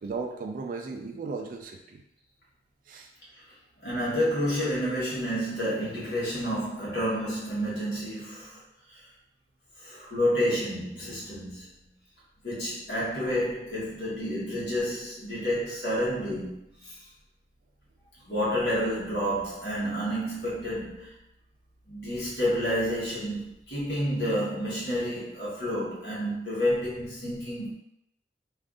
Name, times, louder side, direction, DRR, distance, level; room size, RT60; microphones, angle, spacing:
voice 1, 0.0-2.0 2.9-3.1, right 4 dB, 50° right, 2 dB, 0.3 m, -36 dB
voice 2, 3.8-8.6 8.9-9.1 9.8-11.7 12.4-17.0 18.2-21.1 21.9-27.7, equal, 65° left, -7 dB, 1.1 m, -29 dB
2.5 x 2.5 x 3.5 m, 0.80 s
head